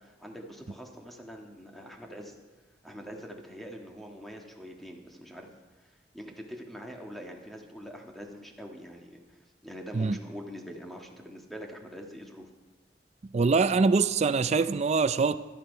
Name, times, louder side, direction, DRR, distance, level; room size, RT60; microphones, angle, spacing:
voice 1, 0.0-2.4 2.8-5.5 5.8-12.5, equal, ahead, 1 dB, 1.6 m, -44 dB
voice 2, 13.3-15.4, right 4 dB, 40° right, 13 dB, 0.4 m, -24 dB
12.5 x 11.5 x 5.5 m, 1.3 s
head